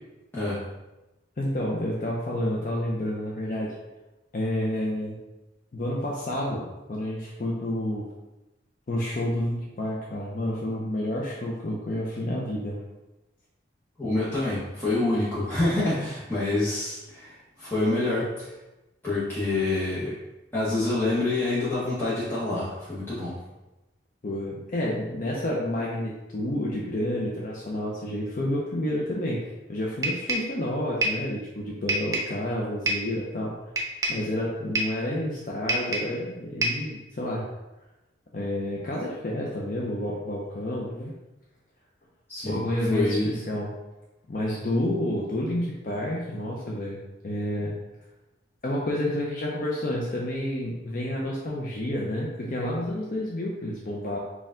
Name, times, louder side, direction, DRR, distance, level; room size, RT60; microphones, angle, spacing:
voice 1, 1.4-3.7 4.3-5.2 5.7-8.1 8.9-12.8 24.2-29.4 29.7-33.5 34.1-37.5 38.3-41.1 42.5-43.7 44.3-47.7 48.6-54.2, left 1 dB, 45° left, -3 dB, 0.5 m, -29 dB
voice 2, 14.0-18.5 19.0-20.2 20.5-23.4 42.3-42.6 42.9-43.4, left 2 dB, 10° left, -11 dB, 0.8 m, -27 dB
sound 1, 30.0-30.5 31.0-31.3 31.9-32.4 32.9-33.1 33.8-34.3 34.7-35.0 35.7-36.2 36.6-36.9, right 1 dB, 20° right, 0.4 m, -27 dB
4.3 x 2.3 x 3.6 m, 1.0 s
head